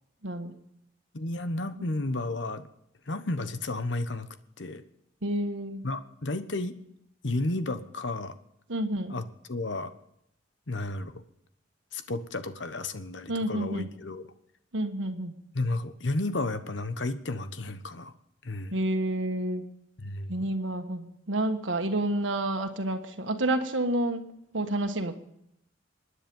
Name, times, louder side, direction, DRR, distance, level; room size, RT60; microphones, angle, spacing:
voice 1, 0.2-0.5 5.2-5.9 8.7-9.2 13.3-13.9 14.7-15.4 18.7-19.6 20.3-25.1, right 1 dB, 90° right, 5 dB, 1.5 m, -29 dB
voice 2, 1.1-2.7 3.1-4.3 4.6-4.8 5.8-6.7 7.2-8.4 9.1-9.9 10.7-11.1 11.9-14.3 15.5-18.1 18.4-18.8 20.0-20.3, left 2 dB, 70° left, 11 dB, 1.1 m, -32 dB
24.5 x 10.0 x 5.4 m, 0.78 s
head